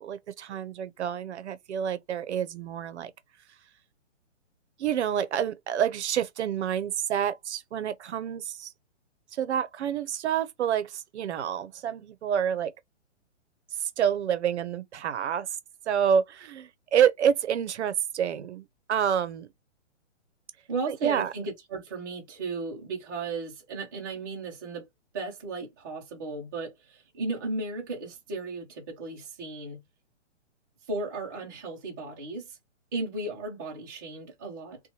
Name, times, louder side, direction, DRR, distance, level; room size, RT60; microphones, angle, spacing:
voice 1, 0.0-3.1 4.8-8.7 9.4-12.7 13.8-15.5 15.9-19.5 20.9-21.3, right 8 dB, 65° right, 0.6 m, -28 dB
voice 2, 20.7-24.9 25.1-29.8 30.9-32.6 32.9-34.8, right 3 dB, 15° right, 0.4 m, -35 dB
2.8 x 2.2 x 2.7 m
hypercardioid pair, 155°, 37 cm